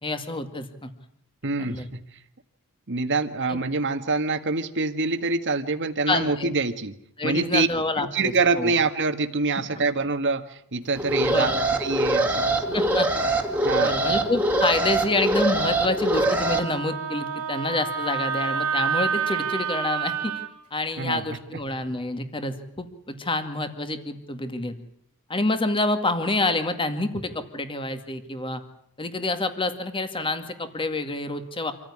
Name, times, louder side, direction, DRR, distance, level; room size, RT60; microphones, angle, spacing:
voice 1, 0.0-0.9 1.6-1.9 3.5-3.6 6.1-6.5 7.2-8.1 8.6-8.7 11.2-11.6 12.7-13.3 13.8-20.4 20.7-24.8 25.3-28.6 29.0-31.7, left 2 dB, 25° left, 8 dB, 2.1 m, -28 dB
voice 2, 1.4-2.0 2.9-6.9 7.2-7.7 8.0-12.8 13.6-14.1 21.0-21.4, right 3 dB, 55° right, 8 dB, 1.7 m, -26 dB
Alarm, 11.0-16.6, right 1 dB, 10° right, 2.3 m, -23 dB
Wind instrument woodwind instrument, 16.1-20.5, right 7 dB, 80° right, 2.5 m, -28 dB
26.5 x 14.5 x 10.0 m, 0.73 s
head